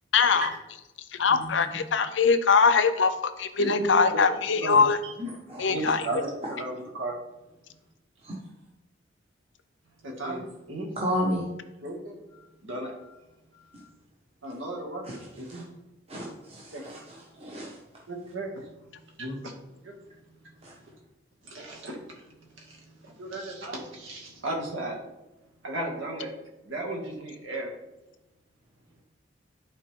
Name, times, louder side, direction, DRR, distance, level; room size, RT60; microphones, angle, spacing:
voice 1, 0.1-0.5 1.2-5.0 5.6-6.0, left 5 dB, 70° left, 11 dB, 0.6 m, -22 dB
voice 2, 3.6-4.9 5.2-7.2 10.0-10.9 11.8-13.2 13.5-13.9 14.4-15.1 15.4-15.6 16.7-16.8 18.1-18.9 19.2-19.6 19.8-20.0 20.4-20.5 20.8-20.9 21.4-25.0 25.6-26.3 26.6-27.7, right 1 dB, 90° right, -1 dB, 2.2 m, -35 dB
voice 3, 11.0-11.5 15.0-15.6 16.1-17.8 20.6-20.7, equal, 30° right, -3 dB, 1.2 m, -33 dB
11.5 x 4.3 x 3.7 m, 0.98 s
head